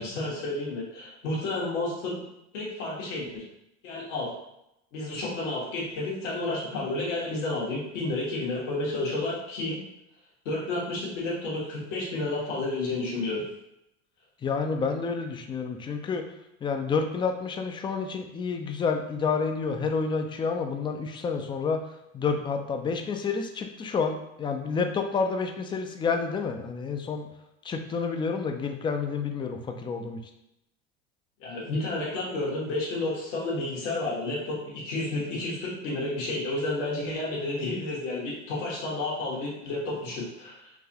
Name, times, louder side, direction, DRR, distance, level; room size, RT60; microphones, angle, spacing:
voice 1, 0.0-2.2 2.5-3.4 3.8-4.3 4.9-9.8 10.4-13.4 31.4-40.7, left 2 dB, 80° left, -5 dB, 1.5 m, -31 dB
voice 2, 14.4-16.2 16.6-21.8 22.1-27.3 27.6-30.2, left 5 dB, 15° left, 5 dB, 0.3 m, -29 dB
3.9 x 2.5 x 2.9 m, 0.83 s
hypercardioid pair, 90°, 36 cm